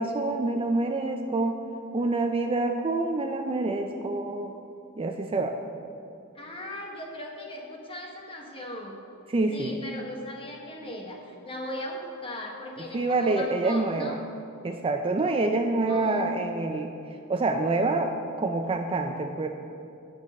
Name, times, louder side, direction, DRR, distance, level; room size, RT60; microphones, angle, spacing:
voice 1, 0.0-1.6 1.9-4.5 5.0-5.6 9.3-9.8 12.9-14.2 14.6-16.9 17.3-19.5, right 2 dB, 25° right, 5 dB, 0.4 m, -27 dB
voice 2, 6.3-9.0 9.5-14.2 15.9-16.3, left 1 dB, 25° left, 1 dB, 1.2 m, -38 dB
9.6 x 6.4 x 6.4 m, 2.7 s
head